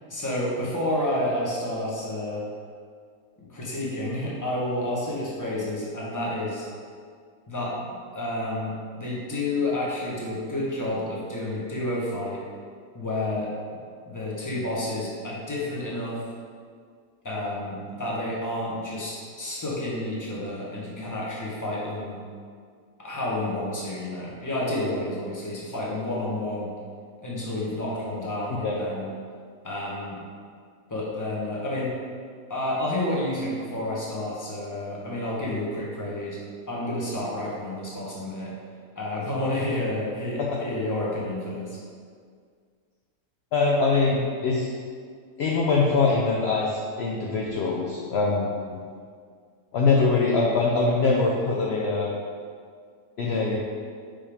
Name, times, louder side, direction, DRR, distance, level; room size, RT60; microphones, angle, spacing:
voice 1, 0.1-2.4 3.5-6.6 7.5-12.4 12.9-13.5 14.1-16.2 17.2-22.2 23.0-26.7 27.2-29.1 29.6-30.2 30.9-31.9 32.5-36.4 36.7-38.5 38.9-41.8, left 1 dB, 15° left, -5 dB, 1.0 m, -30 dB
voice 2, 43.5-44.7 45.4-48.8 49.7-52.1 53.2-53.6, left 3 dB, 60° left, -2 dB, 0.7 m, -23 dB
5.4 x 5.1 x 3.5 m, 2.1 s
omnidirectional pair, 1.6 m